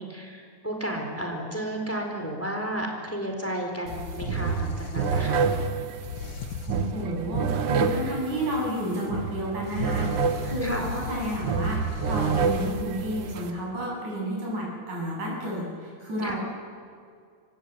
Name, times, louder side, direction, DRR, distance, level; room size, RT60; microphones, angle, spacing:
voice 1, 0.0-5.4 10.6-10.8 16.2-16.3, right 1 dB, 5° left, 2 dB, 4.3 m, -32 dB
sound 1, 3.9-7.4 9.7-12.8, left 7 dB, 70° left, 2.2 m, -37 dB
sound 2, 3.9-13.5, right 5 dB, 60° right, 1.8 m, -28 dB
voice 2, 6.7-16.4, equal, 75° right, -3 dB, 9.4 m, -31 dB
27.0 x 24.5 x 8.6 m, 2.2 s
omnidirectional pair, 3.5 m